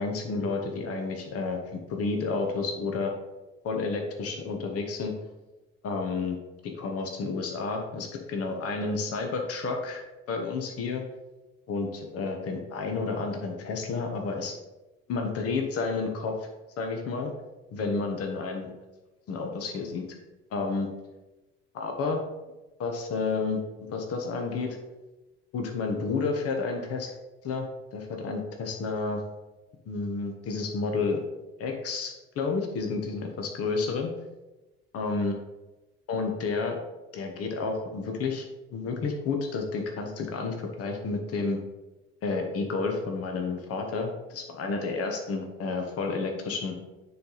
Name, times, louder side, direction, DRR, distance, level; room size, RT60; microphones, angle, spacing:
voice 1, 0.0-1.6 1.9-3.1 3.6-5.1 5.8-6.4 6.6-10.0 10.3-11.0 11.7-14.5 15.1-16.4 16.8-17.3 17.7-18.7 19.3-20.0 20.5-20.9 21.7-22.2 22.8-23.6 23.9-24.8 25.5-27.1 27.4-27.7 27.9-29.2 29.9-31.2 31.6-34.1 34.9-35.3 36.1-36.8 37.1-38.5 38.7-41.6 42.2-46.7, left 4 dB, 50° left, 3 dB, 1.2 m, -30 dB
9.4 x 3.5 x 4.0 m, 1.1 s
hypercardioid pair, 60°, 31 cm